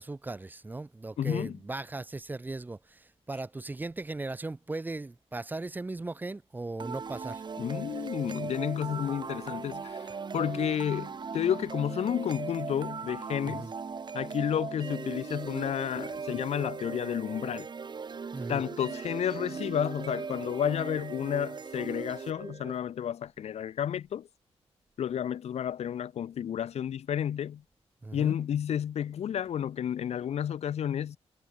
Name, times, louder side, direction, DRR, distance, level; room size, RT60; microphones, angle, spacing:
voice 1, 0.0-7.4 13.4-13.7 18.3-18.6 28.0-28.4, right 2 dB, 15° right, 0.5 m, -38 dB
voice 2, 1.2-1.6 7.6-10.0 10.3-13.7 14.1-17.7 18.5-24.3 25.0-27.6 28.1-31.2, left 9 dB, 80° left, 0.7 m, -31 dB
sound 1, 6.8-22.8, right 5 dB, 45° right, 1.4 m, -39 dB
wide cardioid pair, 120°, 11 cm